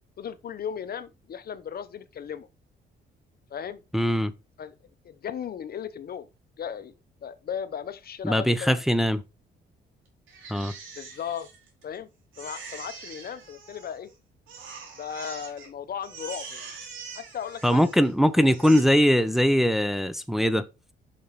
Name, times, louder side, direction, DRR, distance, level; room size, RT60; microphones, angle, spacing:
voice 1, 0.2-2.5 3.5-3.8 4.6-4.7 5.0-6.3 6.6-6.9 7.2-8.8 11.0-11.5 11.8-12.1 12.4-14.1 15.0-16.7 17.1-17.9 18.6-18.7, left 8 dB, 50° left, 0.7 m, -36 dB
voice 2, 3.9-4.3 8.2-9.2 10.5-10.7 17.6-20.6, equal, ahead, 0.7 m, -21 dB
Crying sobbing, 10.3-12.0 12.3-14.1 14.5-15.7 16.0-18.1 18.4-18.8, right 5 dB, 80° right, 3.4 m, -43 dB
6.3 x 5.9 x 4.0 m
cardioid pair, 90°, 20 cm